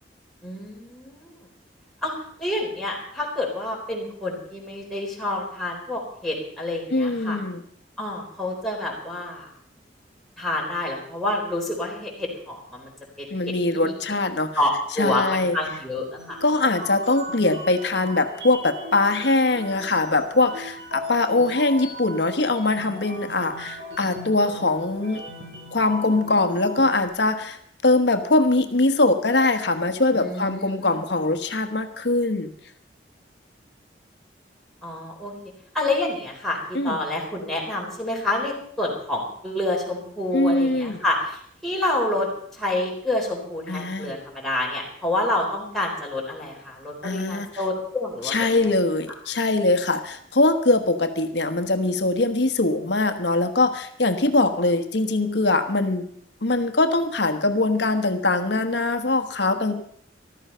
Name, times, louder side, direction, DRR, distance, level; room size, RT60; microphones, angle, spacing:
voice 1, 0.4-1.3 2.0-7.4 8.0-9.5 10.4-12.9 13.2-13.3 13.7-13.9 14.6-16.4 30.1-30.9 34.8-35.3 35.7-42.3 42.6-48.5, left 1 dB, ahead, -4 dB, 4.0 m, -28 dB
voice 2, 6.9-7.6 13.3-14.5 15.0-15.6 16.4-25.2 25.7-27.6 27.8-32.5 36.7-37.0 40.3-41.0 43.7-44.1 47.0-47.6 48.2-56.1 56.4-59.8, left 2 dB, 70° left, 8 dB, 1.2 m, -22 dB
sound 1, 16.2-27.1, equal, 75° right, 6.0 m, -38 dB
14.5 x 13.0 x 5.6 m, 0.63 s
head